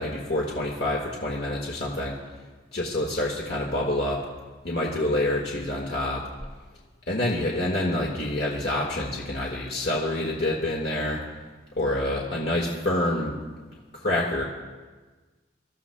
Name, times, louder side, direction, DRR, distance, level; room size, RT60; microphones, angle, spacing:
voice 1, 0.0-2.2 2.7-4.2 4.6-6.2 7.1-11.2 11.8-13.4 13.9-14.4, left 1 dB, 60° left, -3 dB, 1.6 m, -27 dB
26.0 x 13.5 x 2.2 m, 1.3 s
head